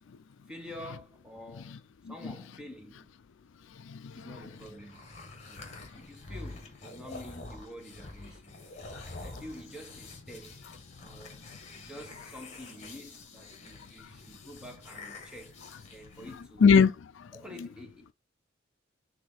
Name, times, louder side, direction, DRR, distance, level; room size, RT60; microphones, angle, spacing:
voice 1, 0.5-1.8 2.1-3.1 4.1-5.1 5.5-8.6 9.0-10.6 11.0-11.4 11.7-16.7 17.3-18.1, equal, 5° right, 1.3 m, -48 dB
voice 2, 3.8-4.3 8.9-9.0 14.0-14.1 16.6-17.3, left 6 dB, 70° left, 0.4 m, -23 dB
sound 1, 4.0-16.4, left 3 dB, 35° left, 1.7 m, -47 dB
4.8 x 3.7 x 5.5 m
head